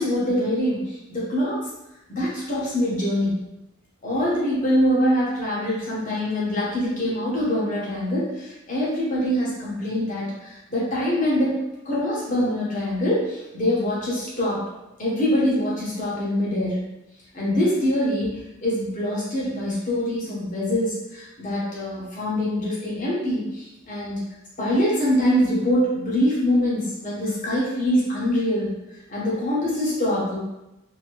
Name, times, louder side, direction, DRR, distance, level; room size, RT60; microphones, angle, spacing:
voice 1, 0.0-1.6 2.1-3.4 4.0-11.6 11.8-14.6 15.0-16.8 17.3-24.2 24.6-28.7 29.1-30.4, left 1 dB, 40° left, -7 dB, 1.1 m, -24 dB
2.9 x 2.8 x 3.0 m, 0.92 s
head